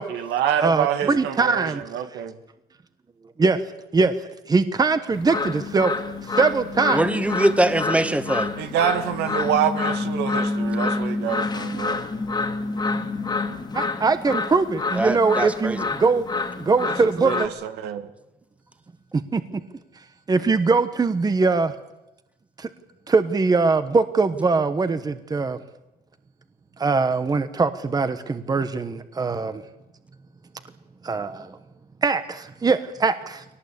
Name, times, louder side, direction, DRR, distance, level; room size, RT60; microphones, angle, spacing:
voice 1, 0.1-2.4 8.6-12.0 16.8-16.9 17.2-18.1, right 9 dB, 85° right, 9 dB, 1.9 m, -26 dB
voice 2, 0.6-1.8 3.4-3.6 3.9-4.1 4.5-5.9 6.4-7.1 13.7-16.2 16.6-17.5 19.1-19.4 20.3-21.7 22.6-22.7 23.1-25.6 26.8-29.6 31.0-31.6 32.0-33.4, right 4 dB, 20° right, 11 dB, 1.3 m, -21 dB
sound 1, 5.1-17.5, left 3 dB, 25° left, 2.3 m, -28 dB
voice 3, 6.9-8.5 15.0-15.8, right 1 dB, 5° right, 9 dB, 1.8 m, -22 dB
22.5 x 18.5 x 8.6 m, 0.92 s
cardioid pair, 110°, 17 cm